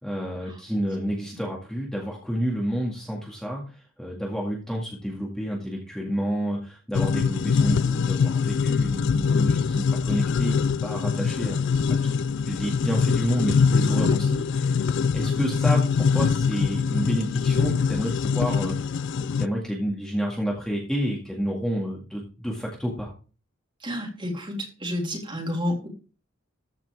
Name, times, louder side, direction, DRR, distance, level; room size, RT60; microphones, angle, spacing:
voice 1, 0.0-3.6 4.0-14.8 15.1-23.1, equal, 5° left, -2 dB, 2.0 m, -30 dB
sound 1, 6.9-19.5, left 5 dB, 60° left, 0.3 m, -23 dB
voice 2, 23.8-25.9, left 1 dB, 25° right, -1 dB, 3.5 m, -30 dB
14.0 x 5.9 x 3.5 m, 0.35 s
head